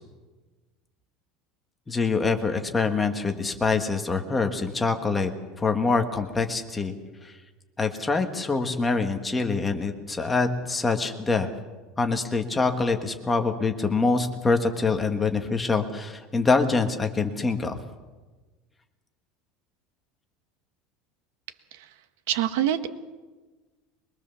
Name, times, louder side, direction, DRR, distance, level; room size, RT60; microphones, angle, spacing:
voice 1, 1.9-5.3 5.6-6.9 7.2-7.4 7.8-11.5 12.0-17.8, left 4 dB, 10° left, 5 dB, 1.5 m, -25 dB
voice 2, 22.3-22.9, right 12 dB, 85° right, 10 dB, 1.5 m, -24 dB
23.0 x 22.0 x 7.0 m, 1.2 s
cardioid pair, 175°, 0 cm